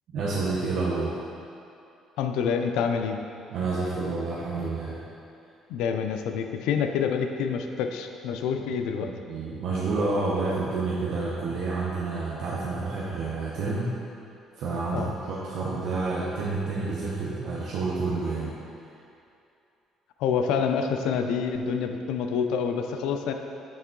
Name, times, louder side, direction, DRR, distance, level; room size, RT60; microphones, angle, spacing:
voice 1, 0.1-1.2 3.5-5.0 9.0-13.9 14.6-18.6, right 3 dB, 60° right, -6 dB, 0.8 m, -29 dB
voice 2, 2.2-3.2 5.7-9.1 14.9-15.1 20.2-23.3, left 6 dB, 85° left, 6 dB, 0.4 m, -27 dB
8.4 x 3.6 x 3.7 m, 2.6 s
cardioid pair, 150°, 0 cm